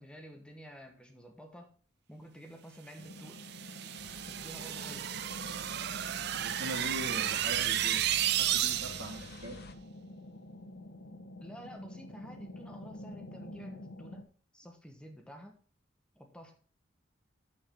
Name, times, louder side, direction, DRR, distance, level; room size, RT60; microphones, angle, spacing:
voice 1, 0.0-1.7 2.1-3.4 4.3-5.1 11.4-14.2 14.5-15.5 16.1-16.5, equal, 5° left, 4 dB, 1.1 m, -50 dB
sound 1, 3.0-14.2, left 1 dB, 75° left, 1.1 m, -48 dB
sound 2, 3.3-9.2, right 12 dB, 55° right, 0.4 m, -33 dB
sound 3, 4.0-9.8, left 3 dB, 55° left, 0.7 m, -52 dB
voice 2, 6.3-9.6, equal, 80° right, 3 dB, 2.2 m, -41 dB
8.5 x 7.2 x 3.6 m, 0.43 s
head